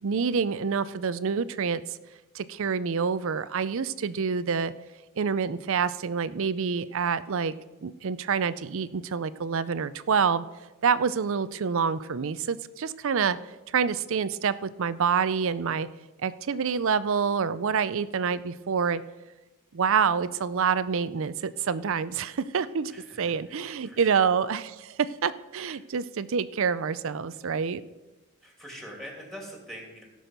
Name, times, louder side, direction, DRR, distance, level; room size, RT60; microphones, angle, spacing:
voice 1, 0.0-1.8 2.3-4.7 5.2-7.5 7.8-10.5 10.8-13.4 13.7-15.9 16.2-19.0 19.7-22.9 23.2-27.8, right 6 dB, 65° right, 16 dB, 0.5 m, -27 dB
voice 2, 22.9-24.2 25.7-25.8 28.4-30.0, equal, ahead, -1 dB, 2.7 m, -44 dB
17.0 x 6.3 x 5.2 m, 1.1 s
head